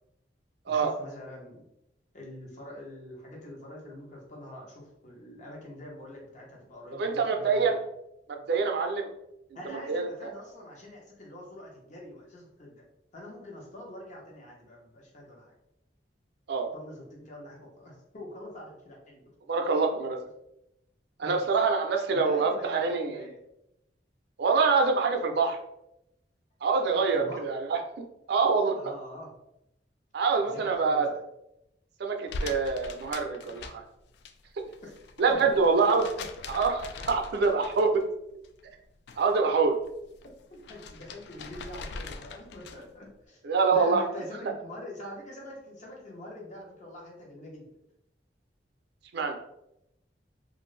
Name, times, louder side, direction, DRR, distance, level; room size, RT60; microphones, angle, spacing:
voice 1, 0.7-1.6 2.1-7.7 9.5-12.8 13.1-15.5 16.7-19.2 21.2-21.4 22.1-23.4 27.1-27.4 28.8-29.3 30.4-31.1 34.8-34.9 35.3-35.4 40.7-43.4 43.7-47.7, left 1 dB, 45° left, -2 dB, 0.8 m, -44 dB
voice 2, 7.0-7.8 8.3-9.1 9.6-10.3 16.5-16.7 19.5-20.2 21.2-23.3 24.4-25.6 26.6-28.8 30.1-31.1 32.0-33.8 35.2-36.1 36.5-37.9 39.2-39.7 43.4-44.0 49.1-49.4, right 4 dB, 65° right, 4 dB, 0.4 m, -25 dB
sound 1, 32.3-34.3 34.6-38.1 38.4-39.4 39.7-43.0, left 3 dB, 70° left, 0.3 m, -42 dB
2.5 x 2.5 x 3.1 m, 0.84 s
head